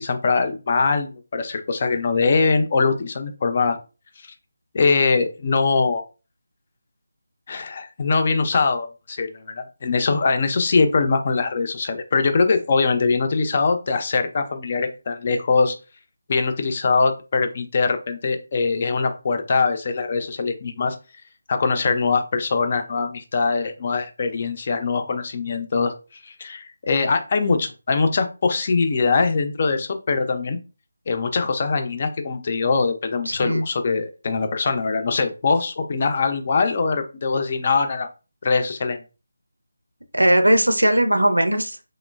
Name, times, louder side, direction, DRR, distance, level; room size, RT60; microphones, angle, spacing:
voice 1, 0.0-3.8 4.2-4.3 4.7-6.0 7.5-15.8 16.3-21.0 21.5-30.6 31.1-38.1 38.4-39.0, left 4 dB, 35° left, 7 dB, 0.4 m, -22 dB
voice 2, 33.3-33.6 40.1-41.8, right 1 dB, 85° right, 7 dB, 0.5 m, -18 dB
3.0 x 2.1 x 2.2 m, 0.31 s
figure-of-eight pair, 160°, 0 cm